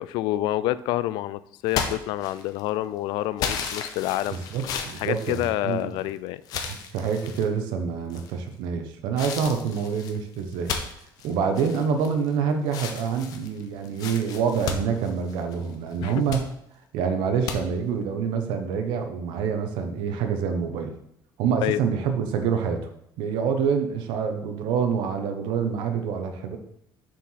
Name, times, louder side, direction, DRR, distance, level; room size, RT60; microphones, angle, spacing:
voice 1, 0.0-4.5 5.0-6.4 16.0-16.2 21.6-21.8, left 14 dB, 70° left, 17 dB, 0.4 m, -28 dB
sound 1, 1.7-2.7 3.4-6.0 6.4-7.5 8.1-8.6 9.2-12.3 12.7-15.7 16.1-16.5 17.5-17.6, left 6 dB, 55° left, 1.0 m, -34 dB
voice 2, 4.3-5.9 6.6-10.7 11.2-16.4 16.9-20.9 21.4-22.9 23.2-26.6, right 6 dB, 75° right, 6 dB, 1.2 m, -26 dB
6.9 x 4.8 x 5.8 m, 0.75 s
cardioid pair, 170°, 8 cm